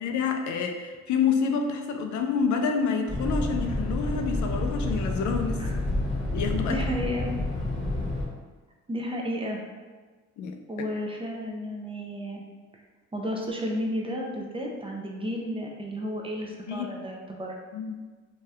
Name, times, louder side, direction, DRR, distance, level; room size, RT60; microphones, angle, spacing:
voice 1, 0.0-5.6 6.3-6.8 10.4-10.6 16.7-16.9 17.7-18.0, left 5 dB, 75° left, 5 dB, 0.4 m, -28 dB
sound 1, 3.1-8.3, left 1 dB, ahead, 1.1 m, -29 dB
voice 2, 6.7-7.3 8.9-9.6 10.7-12.4 13.1-17.6, equal, 20° right, 0 dB, 0.5 m, -32 dB
2.8 x 2.3 x 3.3 m, 1.4 s
cardioid pair, 90°, 30 cm